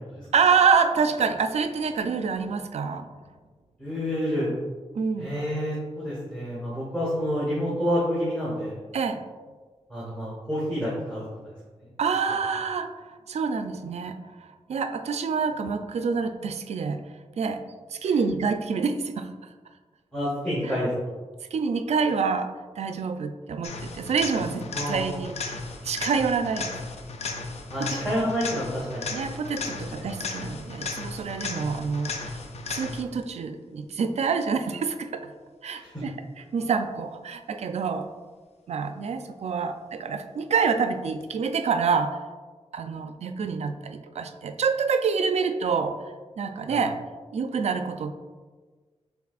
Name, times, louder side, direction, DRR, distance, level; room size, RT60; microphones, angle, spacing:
voice 1, 0.3-3.1 5.0-5.3 8.9-9.2 12.0-12.9 13.3-14.2 14.7-17.6 17.9-19.3 20.6-20.8 21.5-25.6 25.8-26.7 27.8-27.9 29.1-32.4 32.7-35.3 35.6-36.1 36.5-38.1 38.7-42.2 42.7-46.0 46.4-47.0 47.3-48.1, right 5 dB, 70° right, 8 dB, 0.4 m, -27 dB
voice 2, 3.8-4.5 5.2-8.8 9.9-11.2 20.1-20.9 24.7-25.1 27.7-29.1 29.9-30.1 35.7-36.0 46.7-46.8, equal, 10° left, -8 dB, 1.3 m, -28 dB
sound 1, 23.6-33.2 41.2-41.3, left 3 dB, 70° left, 0.5 m, -35 dB
5.9 x 3.6 x 2.4 m, 1.4 s
wide cardioid pair, 130°, 12 cm